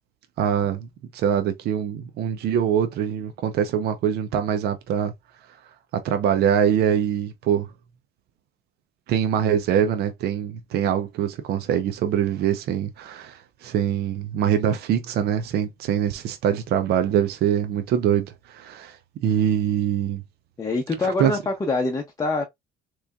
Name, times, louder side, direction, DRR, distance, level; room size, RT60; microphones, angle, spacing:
voice 1, 0.4-5.1 5.9-7.7 9.1-19.0 19.2-20.2 21.0-21.3, right 9 dB, 70° right, 0.7 m, -23 dB
voice 2, 20.6-22.4, left 3 dB, 20° left, 0.7 m, -25 dB
3.4 x 3.1 x 2.4 m
cardioid pair, 110°, 17 cm